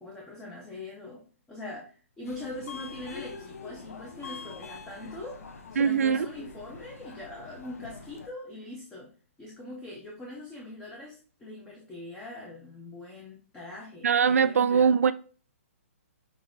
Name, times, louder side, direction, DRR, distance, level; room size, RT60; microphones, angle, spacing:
voice 1, 0.0-5.4 5.7-9.1 9.4-14.9, left 2 dB, 5° left, 0.6 m, -42 dB
Subway metro underground, 2.2-8.3, left 4 dB, 80° left, 0.8 m, -44 dB
voice 2, 5.8-6.3 14.0-15.1, right 6 dB, 80° right, 0.4 m, -22 dB
6.0 x 3.0 x 2.6 m
hypercardioid pair, 170°, 8 cm